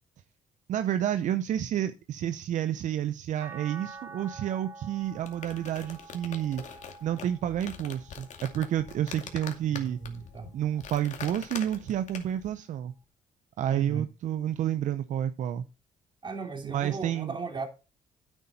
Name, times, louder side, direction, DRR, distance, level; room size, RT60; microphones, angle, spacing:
voice 1, 0.7-6.6 7.0-10.0 10.5-12.9 13.6-15.6 16.6-17.3, right 11 dB, 65° right, 0.7 m, -30 dB
sound 1, 3.4-9.7 10.3-11.6 13.0-13.1, right 4 dB, 20° right, 2.2 m, -49 dB
sound 2, 5.0-12.5, left 7 dB, 60° left, 2.3 m, -44 dB
voice 2, 9.7-10.5 13.7-14.1 16.2-17.7, right 4 dB, 35° right, 3.1 m, -37 dB
9.6 x 8.2 x 4.2 m
cardioid pair, 75°, 13 cm